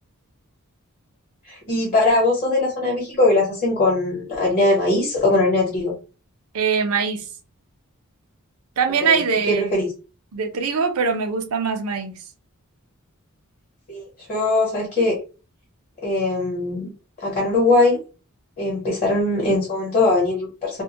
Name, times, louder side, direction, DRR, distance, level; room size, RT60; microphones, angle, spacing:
voice 1, 1.4-5.9 9.0-9.9 13.9-15.2 16.0-16.9 17.2-18.0 18.6-20.8, left 2 dB, 40° left, 1.0 m, -21 dB
voice 2, 6.5-7.2 8.8-9.7 10.3-12.1, right 5 dB, 70° right, 0.6 m, -22 dB
2.4 x 2.2 x 2.8 m
head